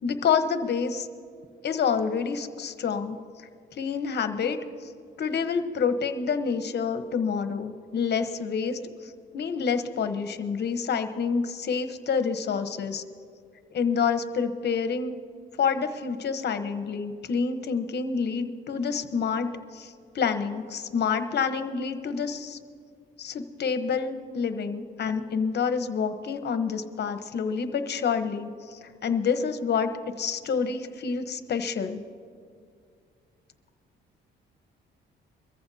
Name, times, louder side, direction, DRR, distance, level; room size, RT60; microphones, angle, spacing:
voice 1, 0.0-1.1 1.6-4.6 5.2-13.0 13.7-15.2 15.6-22.6 23.2-32.0, left 6 dB, 55° left, 9 dB, 1.1 m, -28 dB
23.0 x 14.5 x 2.8 m, 2.2 s
cardioid pair, 90°, 20 cm